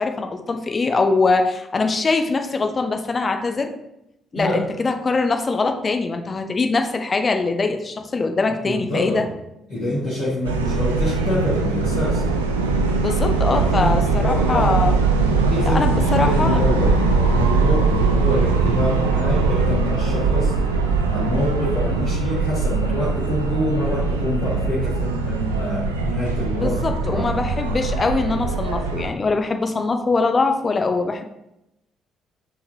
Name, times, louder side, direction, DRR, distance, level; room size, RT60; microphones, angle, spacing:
voice 1, 0.0-3.7 4.3-9.2 13.0-15.0 15.6-16.6 26.6-31.3, left 3 dB, 35° left, 5 dB, 0.5 m, -22 dB
voice 2, 8.6-9.3 9.7-12.2 13.5-14.7 15.5-27.4, left 1 dB, 55° left, -11 dB, 1.6 m, -26 dB
sound 1, 10.4-29.1, right 4 dB, 80° right, 0.3 m, -21 dB
5.6 x 3.3 x 2.7 m, 0.85 s
figure-of-eight pair, 45°, 0 cm